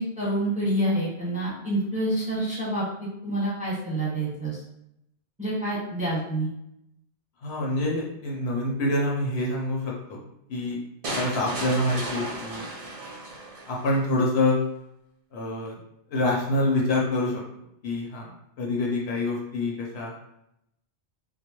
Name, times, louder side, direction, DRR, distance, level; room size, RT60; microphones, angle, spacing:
voice 1, 0.0-2.8 3.2-4.6 5.4-6.5, right 1 dB, 5° right, -9 dB, 0.9 m, -27 dB
voice 2, 7.4-10.2 10.5-10.8 11.1-12.7 13.7-14.6 15.3-15.8 16.1-17.4 17.8-20.1, left 1 dB, 70° left, -2 dB, 0.8 m, -26 dB
sound 1, 11.0-14.0, right 1 dB, 50° right, 0.4 m, -34 dB
2.2 x 2.0 x 2.9 m, 0.80 s
omnidirectional pair, 1.1 m